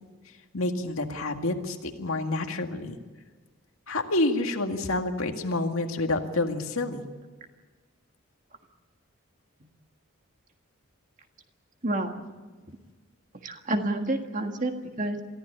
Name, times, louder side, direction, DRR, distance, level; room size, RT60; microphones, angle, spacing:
voice 1, 0.5-2.9 3.9-7.1, left 2 dB, 80° left, 4 dB, 2.0 m, -28 dB
voice 2, 11.8-12.1 12.7-12.8 13.4-15.2, right 1 dB, 35° right, 5 dB, 1.7 m, -29 dB
23.0 x 15.0 x 10.0 m, 1.4 s
head